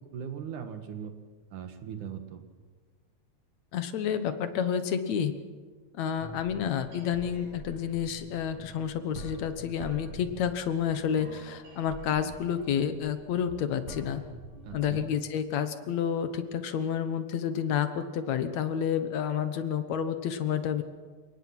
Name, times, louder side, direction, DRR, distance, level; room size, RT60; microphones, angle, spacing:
voice 1, 0.1-1.1 1.5-2.4 14.6-15.1, right 8 dB, 85° right, 7 dB, 3.2 m, -39 dB
voice 2, 3.7-5.3 6.0-14.2 14.7-20.8, left 8 dB, 70° left, 10 dB, 2.4 m, -30 dB
sound 1, 6.2-14.9, right 3 dB, 70° right, 7.9 m, -46 dB
29.0 x 18.0 x 6.1 m, 1.4 s
omnidirectional pair, 3.4 m